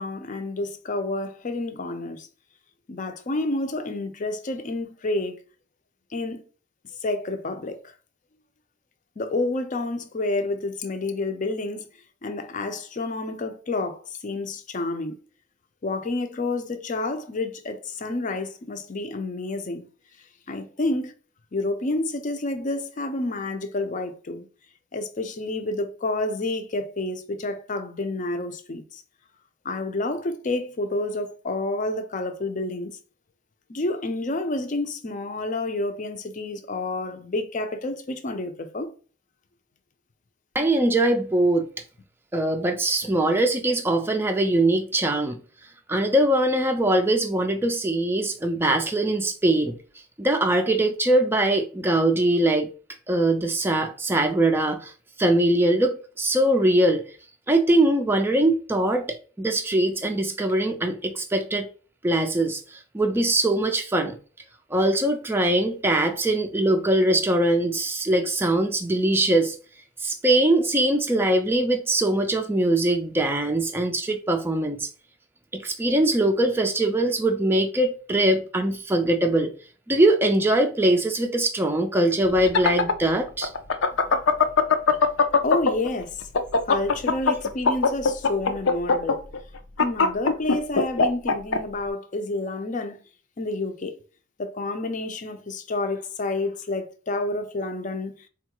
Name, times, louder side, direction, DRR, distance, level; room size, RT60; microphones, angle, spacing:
voice 1, 0.0-2.3 2.9-5.4 6.1-6.4 7.0-7.8 9.2-11.9 12.2-15.2 15.8-19.9 20.5-21.1 21.5-24.5 24.9-29.0 29.6-33.0 33.7-38.9 85.4-86.2 86.7-89.2 89.8-93.0 93.4-93.9 94.4-98.1, left 2 dB, 40° left, 0.5 m, -29 dB
voice 2, 40.5-41.7 42.3-45.4 45.9-49.7 50.2-52.7 53.1-54.9 55.2-57.0 57.5-61.7 62.0-64.2 64.7-69.6 70.0-74.9 75.5-79.5 79.9-83.5, right 1 dB, 10° right, 0.4 m, -22 dB
sound 1, 82.3-85.9 86.2-91.6, left 5 dB, 85° left, 0.6 m, -20 dB
4.2 x 2.3 x 2.9 m
head